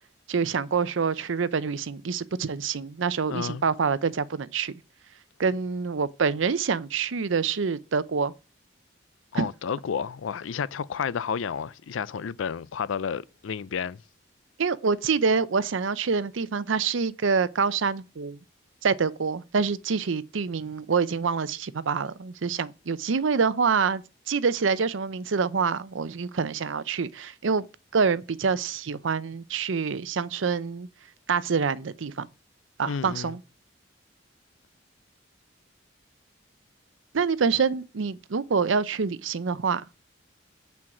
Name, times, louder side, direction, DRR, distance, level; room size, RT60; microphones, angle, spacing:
voice 1, 0.3-4.7 5.4-8.3 9.3-9.5 14.6-18.4 18.8-27.7 27.9-30.9 31.3-32.3 32.8-33.4 37.1-39.8, right 5 dB, 85° right, 0.6 m, -26 dB
voice 2, 3.3-3.6 9.3-14.0 32.9-33.4, left 6 dB, 90° left, 0.4 m, -31 dB
8.5 x 4.6 x 5.9 m
head